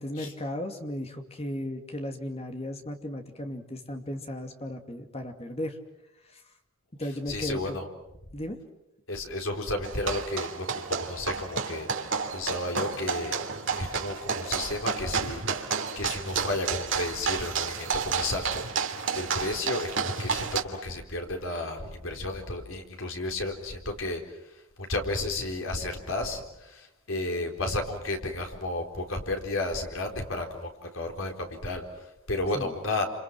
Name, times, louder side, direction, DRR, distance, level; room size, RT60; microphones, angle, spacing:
voice 1, 0.0-5.8 6.3-6.4 7.0-7.8 8.3-8.6 32.5-32.7, left 1 dB, 30° left, 5 dB, 2.6 m, -35 dB
voice 2, 7.3-7.9 9.1-13.4 13.8-18.7 19.1-33.1, left 2 dB, 70° left, 3 dB, 4.2 m, -33 dB
sound 1, 9.8-20.6, right 5 dB, 60° right, 2.6 m, -31 dB
29.0 x 27.5 x 6.2 m, 0.85 s
head